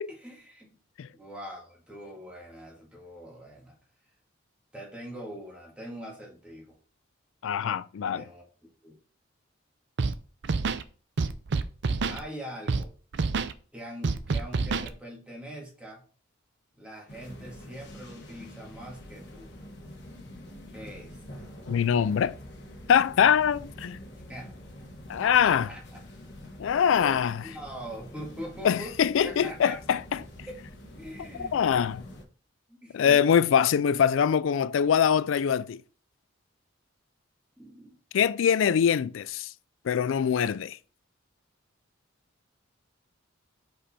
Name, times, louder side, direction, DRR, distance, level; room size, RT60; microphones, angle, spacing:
voice 1, 0.1-0.8 1.1-3.8 4.7-6.8 8.1-8.4 8.8-9.0 12.1-12.9 13.7-16.0 16.8-19.5 20.7-21.2 24.3-24.5 25.2-25.8 26.7-30.0 30.5-30.6 30.9-31.5 32.7-33.3 37.6-38.0, equal, 5° right, 1.8 m, -43 dB
voice 2, 7.4-8.2 21.7-22.4 22.9-24.0 25.1-25.7 26.6-27.4 28.6-30.2 31.4-32.1 32.9-35.8 38.1-39.5 39.8-40.8, left 8 dB, 75° left, 0.3 m, -23 dB
Scratching (performance technique), 10.0-10.1 10.4-10.8 11.2-12.2 12.7-12.8 13.1-13.5 14.0-14.9, right 4 dB, 60° right, 0.5 m, -27 dB
sound 1, 17.1-32.2, left 1 dB, 55° left, 1.2 m, -46 dB
5.2 x 4.6 x 4.2 m
head